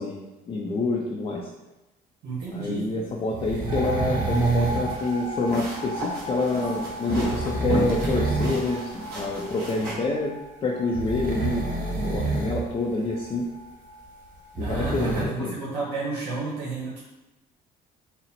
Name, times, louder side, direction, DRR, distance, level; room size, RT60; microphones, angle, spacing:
voice 1, 0.0-1.5 2.5-10.3 10.6-11.7 12.0-13.5 14.6-15.5, left 3 dB, 35° left, -2 dB, 0.5 m, -27 dB
voice 2, 2.2-2.9 6.6-6.8 14.6-17.0, right 3 dB, 85° right, -7 dB, 1.1 m, -32 dB
sound 1, 3.3-5.0 7.1-8.7 9.0-9.2 10.9-12.6 12.9-13.0 14.3-15.2, right 3 dB, 50° right, 0.9 m, -27 dB
sound 2, 3.7-14.8, equal, 25° right, 0.7 m, -38 dB
sound 3, 4.3-9.9, right 2 dB, 65° right, 1.3 m, -35 dB
4.0 x 2.1 x 4.1 m, 1.0 s
cardioid pair, 110°, 17 cm